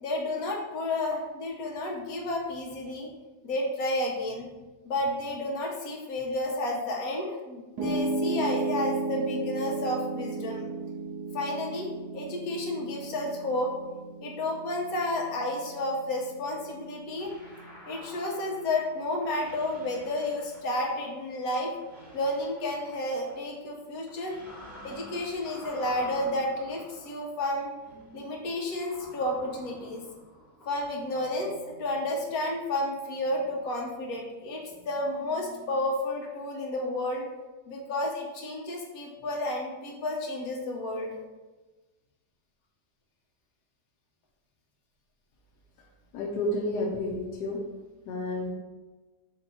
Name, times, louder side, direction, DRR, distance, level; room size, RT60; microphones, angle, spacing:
voice 1, 0.0-3.1 3.4-4.5 4.8-10.7 11.3-13.7 14.2-17.3 17.9-21.7 22.1-24.3 24.8-27.7 28.1-30.0 30.7-37.3 37.7-41.2, left 1 dB, 70° left, -1 dB, 1.3 m, -31 dB
Piano, 7.8-20.0, right 3 dB, 80° right, 1.4 m, -35 dB
sound 1, 17.2-18.9 19.2-21.4 21.7-23.7 24.1-36.1, left 1 dB, ahead, 1.2 m, -50 dB
voice 2, 46.1-47.6 48.1-48.5, left 1 dB, 90° left, -1 dB, 1.2 m, -30 dB
4.5 x 2.8 x 4.2 m, 1.2 s
omnidirectional pair, 1.7 m